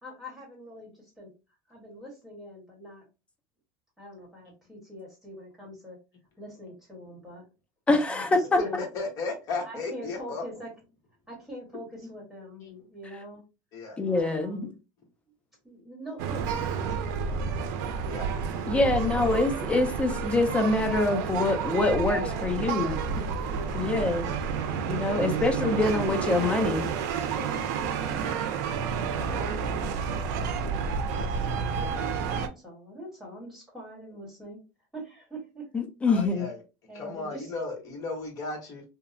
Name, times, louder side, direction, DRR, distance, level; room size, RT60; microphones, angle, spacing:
voice 1, 0.0-1.3 1.7-3.0 4.0-6.0 6.4-7.4 8.1-8.2 8.6-8.8 9.6-10.7 11.3-13.4 14.1-14.7 15.6-17.6 18.4-18.9 22.1-24.0 25.1-26.8 27.3-28.4 30.5-31.8 32.4-34.6 34.9-35.7 36.9-37.5, right 1 dB, 5° right, 1.2 m, -43 dB
voice 2, 7.9-8.4 14.0-14.7 18.7-22.9 23.7-24.3 24.9-26.9 35.7-36.5, left 2 dB, 15° left, 0.4 m, -25 dB
voice 3, 8.6-10.4 12.0-12.1 12.6-12.8 13.7-14.0 18.1-18.3 36.1-36.6 36.9-38.8, left 3 dB, 40° left, 1.0 m, -35 dB
sound 1, 16.2-32.5, right 6 dB, 85° right, 0.4 m, -30 dB
2.7 x 2.0 x 2.5 m
cardioid pair, 155°, 9 cm